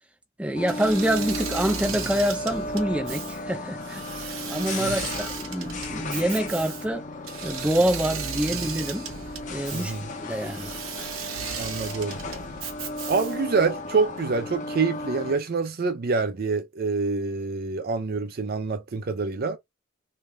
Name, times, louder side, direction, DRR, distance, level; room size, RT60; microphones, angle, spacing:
voice 1, 0.4-7.1 7.4-9.1 9.5-9.9 10.2-10.7, right 1 dB, 5° right, 0.6 m, -26 dB
sound 1, 0.5-15.3, left 2 dB, 40° left, 0.7 m, -35 dB
Engine / Mechanisms, 0.7-13.5, right 6 dB, 85° right, 0.8 m, -36 dB
voice 2, 11.6-12.2 13.1-19.6, right 4 dB, 50° right, 0.5 m, -26 dB
3.3 x 2.5 x 3.3 m
head